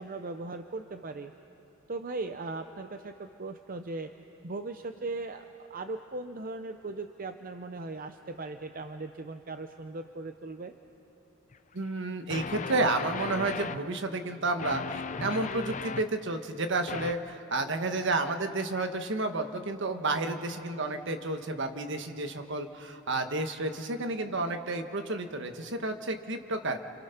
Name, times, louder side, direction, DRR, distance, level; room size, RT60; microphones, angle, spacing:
voice 1, 0.0-1.3 1.9-4.1 4.4-10.7 20.1-20.4, right 3 dB, 45° right, 7 dB, 0.7 m, -38 dB
sound 1, 11.5-11.6 12.3-13.8 14.6-16.1 16.9-17.1, left 5 dB, 35° left, 0.5 m, -36 dB
voice 2, 11.7-26.8, right 2 dB, 60° right, 7 dB, 1.4 m, -31 dB
30.0 x 27.0 x 5.8 m, 2.9 s
head